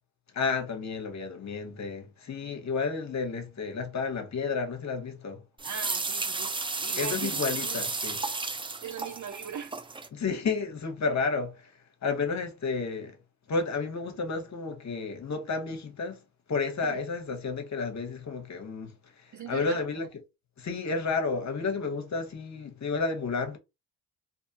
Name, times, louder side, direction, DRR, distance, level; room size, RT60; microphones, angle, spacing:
voice 1, 0.3-5.4 7.0-8.2 10.1-11.7 12.0-13.2 13.5-16.2 16.5-18.9 19.5-20.1 20.6-23.6, left 4 dB, 40° left, 0.9 m, -31 dB
sound 1, 5.6-10.1, right 3 dB, 10° right, 0.4 m, -33 dB
voice 2, 5.6-6.5 6.8-7.4 7.7-7.8 8.8-9.7 16.8-17.0 19.3-20.0 21.1-21.2, right 6 dB, 40° right, 0.7 m, -40 dB
2.6 x 2.4 x 2.7 m
hypercardioid pair, 55°, 45 cm